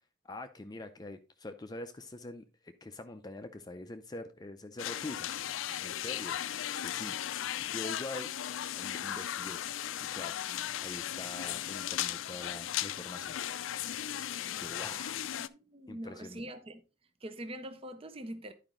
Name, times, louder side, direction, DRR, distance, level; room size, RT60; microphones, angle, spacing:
voice 1, 0.2-5.3 5.8-6.4 6.7-7.2 7.6-8.3 8.7-9.6 10.1-10.3 10.8-13.4 14.5-15.2 15.9-16.4, left 2 dB, 20° left, 0.5 m, -44 dB
sound 1, 4.8-15.5, left 11 dB, 75° left, 0.4 m, -36 dB
voice 2, 15.5-16.8 17.2-18.5, right 1 dB, 30° right, 0.6 m, -43 dB
10.5 x 4.9 x 3.7 m
head